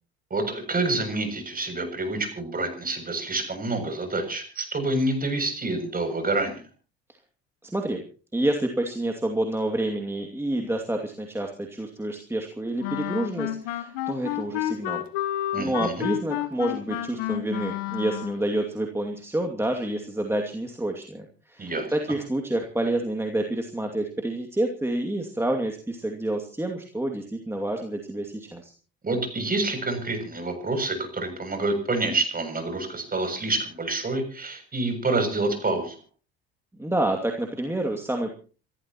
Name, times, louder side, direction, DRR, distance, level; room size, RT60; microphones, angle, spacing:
voice 1, 0.3-6.6 15.5-16.0 21.6-21.9 29.0-36.0, right 2 dB, 30° right, 6 dB, 7.3 m, -27 dB
voice 2, 7.6-8.0 8.3-15.0 15.6-28.7 36.8-38.3, right 1 dB, 10° right, 3 dB, 2.5 m, -28 dB
Wind instrument woodwind instrument, 12.8-18.5, left 14 dB, 80° left, 1.5 m, -30 dB
28.5 x 14.0 x 3.0 m, 0.37 s
hypercardioid pair, 65°, 31 cm